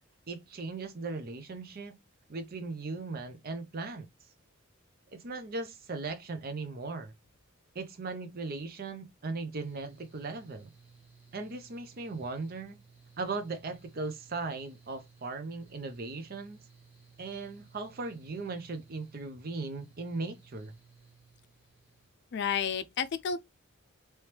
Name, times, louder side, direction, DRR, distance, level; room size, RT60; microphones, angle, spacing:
voice 1, 0.3-1.9 2.3-4.1 5.1-7.1 7.7-10.7 11.3-12.8 13.2-16.6 17.2-20.7, right 3 dB, 45° right, 0.6 m, -38 dB
Mechanical fan, 9.5-22.1, right 5 dB, 10° right, 1.3 m, -59 dB
voice 2, 22.3-23.4, left 7 dB, 55° left, 0.4 m, -31 dB
3.1 x 3.0 x 3.2 m
head